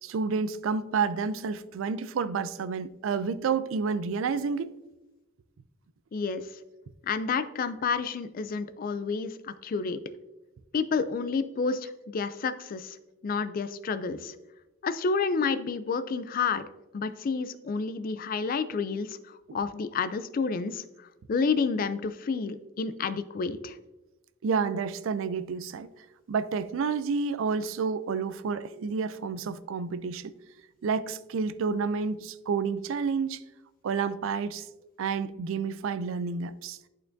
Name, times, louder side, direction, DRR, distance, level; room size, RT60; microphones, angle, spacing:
voice 1, 0.0-4.8 24.4-25.9 26.3-30.3 30.8-33.4 33.8-34.7 35.0-36.8, right 5 dB, 70° right, 0.4 m, -30 dB
voice 2, 6.1-6.5 7.0-10.0 10.7-13.0 13.2-14.4 14.8-16.6 16.9-23.8, left 5 dB, 45° left, 0.3 m, -30 dB
11.0 x 4.4 x 2.6 m
head